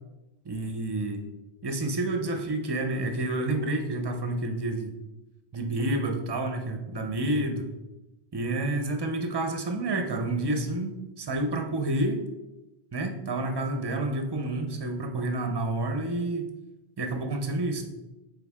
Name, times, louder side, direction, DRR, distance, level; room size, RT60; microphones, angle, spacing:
voice 1, 0.4-1.2 1.6-4.9 5.5-7.7 8.3-12.2 12.9-16.5 17.0-17.8, right 2 dB, 30° right, 5 dB, 0.6 m, -29 dB
8.3 x 4.0 x 3.6 m, 1.0 s
omnidirectional pair, 1.1 m